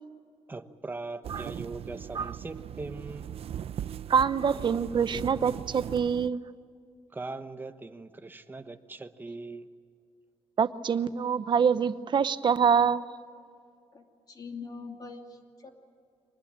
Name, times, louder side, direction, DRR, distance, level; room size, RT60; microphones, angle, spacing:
voice 1, 0.5-3.3 7.1-9.7, right 3 dB, 20° right, 9 dB, 1.1 m, -40 dB
sound 1, 1.2-6.3, right 9 dB, 65° right, 0.6 m, -39 dB
voice 2, 4.1-6.4 10.6-13.0, right 7 dB, 45° right, 13 dB, 0.8 m, -25 dB
voice 3, 13.9-15.7, left 4 dB, 35° left, 3 dB, 2.7 m, -43 dB
24.5 x 20.0 x 8.9 m, 2.3 s
wide cardioid pair, 145°, 11 cm